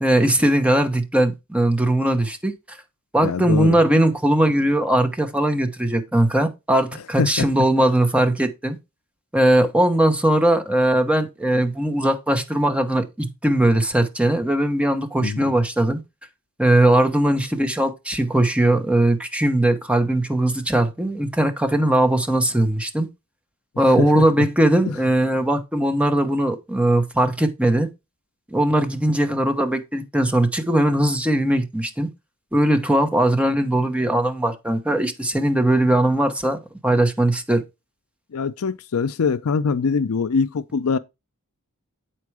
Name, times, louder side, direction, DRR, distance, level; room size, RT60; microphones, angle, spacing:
voice 1, 0.0-2.8 3.1-8.8 9.3-16.0 16.6-23.1 23.8-27.9 28.5-32.1 32.5-37.6, right 1 dB, 5° right, 1.0 m, -20 dB
voice 2, 3.2-3.8 7.2-7.5 15.2-15.5 24.0-24.5 24.9-25.0 38.3-41.0, left 5 dB, 70° left, 0.5 m, -23 dB
8.4 x 4.5 x 4.8 m
head